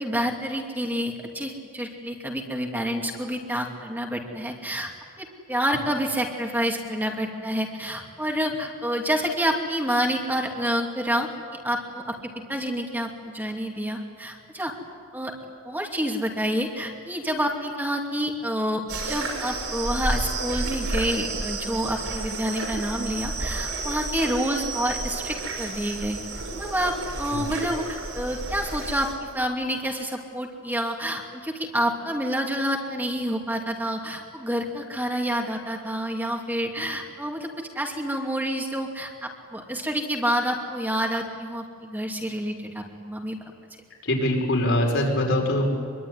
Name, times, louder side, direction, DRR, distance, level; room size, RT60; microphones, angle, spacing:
voice 1, 0.0-4.9 5.2-11.3 11.6-12.2 12.5-14.7 15.1-15.3 15.6-26.2 26.6-43.4, equal, 10° right, 1 dB, 2.7 m, -28 dB
sound 1, 18.9-29.1, right 2 dB, 70° right, 6.6 m, -31 dB
voice 2, 44.0-45.7, left 1 dB, 60° left, 1 dB, 5.8 m, -23 dB
25.0 x 23.5 x 9.7 m, 2.2 s
head